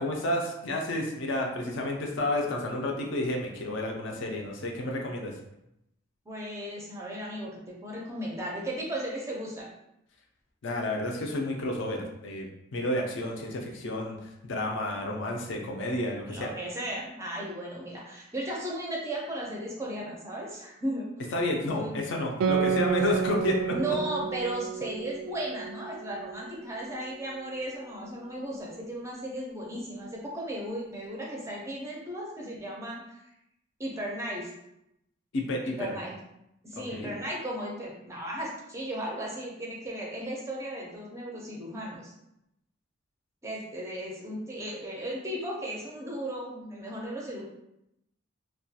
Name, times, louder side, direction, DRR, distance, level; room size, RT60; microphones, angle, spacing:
voice 1, 0.0-5.3 10.6-14.2 14.4-16.5 21.3-24.0 35.3-36.0 36.9-37.1, left 1 dB, 60° left, 0 dB, 0.4 m, -31 dB
voice 2, 6.3-9.7 16.3-21.1 21.6-22.0 23.7-33.2 33.8-34.5 35.6-36.2 36.6-42.1 43.4-47.4, right 1 dB, 15° right, -3 dB, 0.4 m, -35 dB
Guitar, 22.4-27.3, right 7 dB, 80° right, 0.3 m, -31 dB
2.3 x 2.2 x 2.7 m, 0.84 s
head